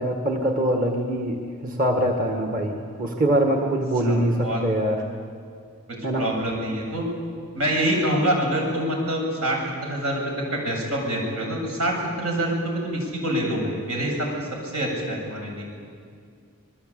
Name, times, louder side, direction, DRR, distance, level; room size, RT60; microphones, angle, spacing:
voice 1, 0.0-5.0 6.0-6.3, right 1 dB, 40° right, 2 dB, 1.8 m, -23 dB
voice 2, 4.0-4.6 6.2-7.1 7.5-15.6, right 1 dB, 85° right, 0 dB, 7.7 m, -26 dB
26.5 x 21.0 x 8.6 m, 2.2 s
head